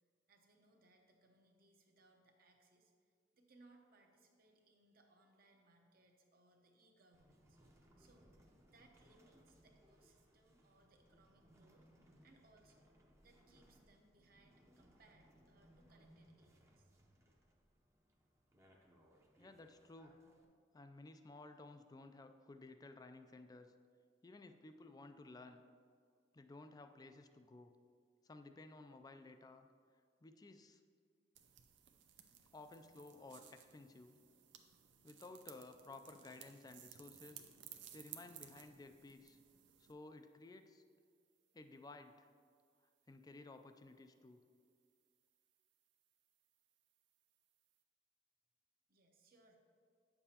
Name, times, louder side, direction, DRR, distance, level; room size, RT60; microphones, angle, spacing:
voice 1, 0.3-8.4 8.6-11.9 12.2-12.9 13.2-16.9 48.9-49.6, right 2 dB, 55° right, 3 dB, 0.9 m, -70 dB
sound 1, 7.1-20.4, equal, 15° right, 0.7 m, -68 dB
voice 2, 19.4-20.1 20.7-23.7 24.2-25.6 26.3-27.7 28.2-29.7 30.2-30.8 32.5-34.1 35.0-37.4 37.9-39.4 39.8-40.8 41.5-42.3 43.1-44.4, left 2 dB, 20° left, 8 dB, 0.3 m, -56 dB
sound 2, 31.3-39.9, right 10 dB, 85° right, 0.6 m, -59 dB
9.0 x 6.8 x 2.8 m, 2.1 s
head